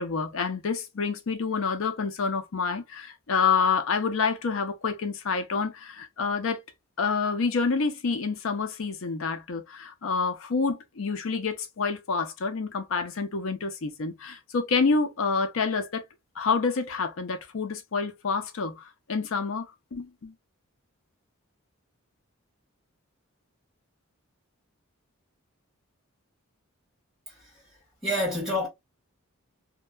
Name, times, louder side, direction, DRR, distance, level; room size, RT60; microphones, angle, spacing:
voice 1, 0.0-6.6 7.0-16.0 16.4-20.3, left 5 dB, 65° left, 0.5 m, -28 dB
voice 2, 27.3-28.7, left 1 dB, ahead, 1.4 m, -30 dB
2.8 x 2.2 x 2.2 m
head